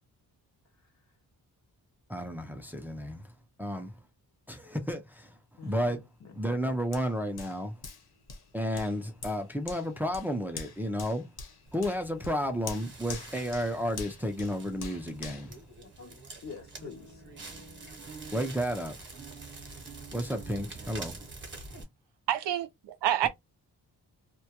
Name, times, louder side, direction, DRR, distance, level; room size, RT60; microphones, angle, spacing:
voice 1, 2.1-3.2 3.6-3.9 4.5-5.3 5.6-6.0 6.4-7.8 8.5-11.2 11.7-15.5 18.3-19.0 20.1-21.2, equal, 5° right, 0.4 m, -32 dB
voice 2, 5.6-6.6 15.8-17.2, left 5 dB, 45° left, 0.6 m, -47 dB
Hands, 6.9-16.4 16.9-17.0, left 4 dB, 60° left, 0.9 m, -46 dB
Crackle, 11.7-21.8, right 3 dB, 30° right, 0.9 m, -46 dB
voice 3, 22.3-23.3, right 11 dB, 90° right, 0.6 m, -28 dB
2.2 x 2.2 x 2.7 m
wide cardioid pair, 115°, 40 cm